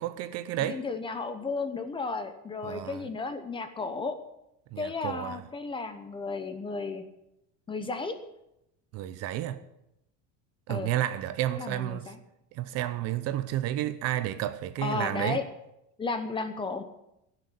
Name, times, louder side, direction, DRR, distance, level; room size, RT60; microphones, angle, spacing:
voice 1, 0.0-0.8 2.6-3.1 4.7-5.4 8.9-9.6 10.7-12.1 12.5-15.4, right 13 dB, 45° right, 0.7 m, -31 dB
voice 2, 0.6-4.2 4.8-7.0 7.7-8.1 10.7-10.9 11.6-12.2 14.8-15.4 16.0-16.8, left 4 dB, 15° left, 0.9 m, -33 dB
15.0 x 6.7 x 10.0 m
cardioid pair, 180°, 36 cm